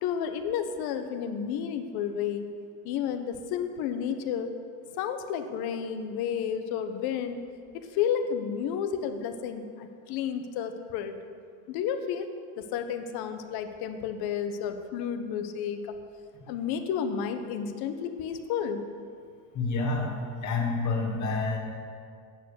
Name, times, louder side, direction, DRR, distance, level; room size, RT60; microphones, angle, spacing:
voice 1, 0.0-2.5 2.8-4.5 5.0-7.4 7.7-11.2 11.7-12.3 12.6-15.9 16.5-18.8, left 8 dB, 60° left, 8 dB, 1.0 m, -31 dB
voice 2, 19.5-20.1 20.4-21.6, left 3 dB, 45° left, 0 dB, 2.0 m, -28 dB
8.7 x 6.8 x 6.6 m, 2.2 s
supercardioid pair, 120°, 42 cm